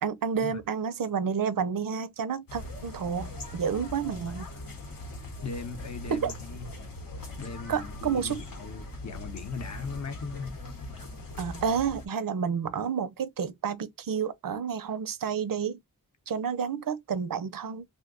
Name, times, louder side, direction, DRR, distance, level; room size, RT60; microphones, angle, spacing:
voice 1, 0.0-4.5 6.1-6.3 7.7-8.4 11.4-15.8 16.3-17.8, right 7 dB, 80° right, 0.5 m, -30 dB
sound 1, 2.5-12.1, left 1 dB, 85° left, 0.8 m, -41 dB
voice 2, 4.3-4.6 5.4-6.7 7.4-10.5, left 4 dB, 55° left, 0.7 m, -39 dB
2.6 x 2.2 x 3.6 m
wide cardioid pair, 45°, 33 cm